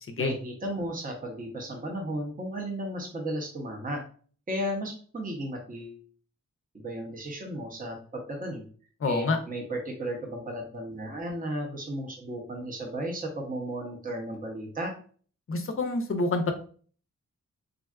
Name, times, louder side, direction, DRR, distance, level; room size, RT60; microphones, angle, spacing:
voice 1, 0.2-4.0 4.5-6.0 6.7-8.6 9.0-14.9, right 1 dB, 25° right, 1 dB, 0.6 m, -34 dB
voice 2, 9.0-9.4 15.5-16.5, left 3 dB, 45° left, 6 dB, 0.5 m, -27 dB
3.5 x 2.2 x 2.2 m, 0.43 s
wide cardioid pair, 125°, 31 cm